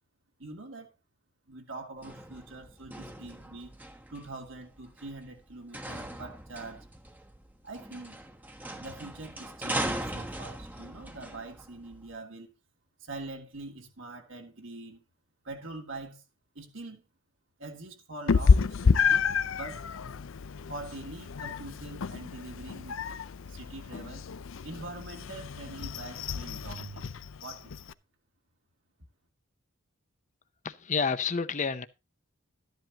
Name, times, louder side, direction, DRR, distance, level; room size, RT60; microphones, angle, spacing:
voice 1, 0.4-0.9 1.5-3.7 4.1-6.8 7.6-8.2 8.8-12.5 13.0-15.0 15.4-16.2 16.5-17.0 17.6-19.3 19.5-19.9 20.7-23.0 23.5-24.3 24.6-27.7, right 2 dB, 70° right, 2.8 m, -44 dB
sound 1, 2.0-12.1, right 1 dB, 10° right, 1.1 m, -39 dB
Meow, 18.3-27.9, left 5 dB, 75° left, 0.5 m, -29 dB
voice 2, 30.6-31.9, left 5 dB, 35° left, 0.7 m, -29 dB
13.0 x 10.5 x 2.9 m
head